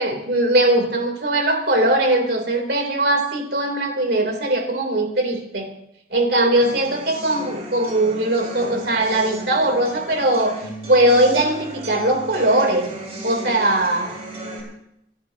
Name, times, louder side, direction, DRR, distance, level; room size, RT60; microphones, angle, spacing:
voice 1, 0.0-5.7 6.1-10.6 10.9-12.9 13.2-14.1, right 1 dB, 60° right, 3 dB, 3.4 m, -20 dB
sound 1, 6.6-14.6, right 1 dB, 35° right, 4.8 m, -35 dB
28.5 x 12.5 x 2.9 m, 0.77 s
head